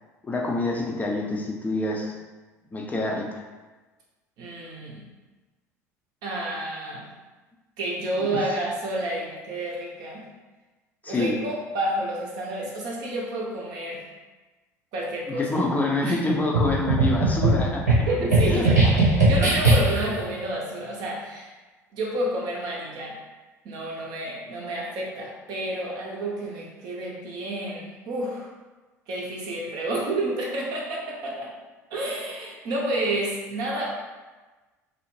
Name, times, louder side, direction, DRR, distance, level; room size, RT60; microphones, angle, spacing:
voice 1, 0.2-2.1 2.7-3.4 11.0-11.4 15.3-18.0 18.5-18.7, left 2 dB, 20° left, -1 dB, 0.5 m, -26 dB
voice 2, 4.4-5.1 6.2-7.1 7.8-10.3 11.1-14.1 14.9-15.6 16.0-16.2 18.1-18.8 19.3-21.5 21.9-23.2 23.6-28.5 29.1-31.5 31.9-33.9, right 1 dB, 50° right, -3 dB, 0.5 m, -30 dB
sound 1, 16.5-20.2, right 2 dB, 85° right, 0.7 m, -20 dB
2.5 x 2.0 x 3.1 m, 1.2 s
figure-of-eight pair, 65°, 9 cm